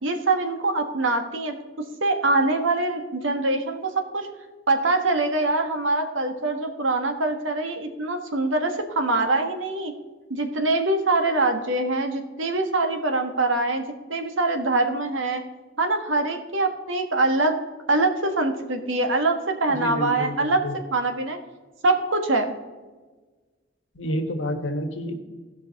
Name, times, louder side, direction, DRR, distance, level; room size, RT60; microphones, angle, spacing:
voice 1, 0.0-1.6 2.0-4.3 4.7-9.9 10.3-15.4 15.8-17.6 17.9-20.6 20.9-21.4 21.8-22.5, right 2 dB, 80° right, 5 dB, 1.5 m, -24 dB
voice 2, 19.7-20.7 23.9-25.2, equal, 75° left, 6 dB, 1.4 m, -29 dB
16.5 x 5.8 x 4.1 m, 1.3 s
head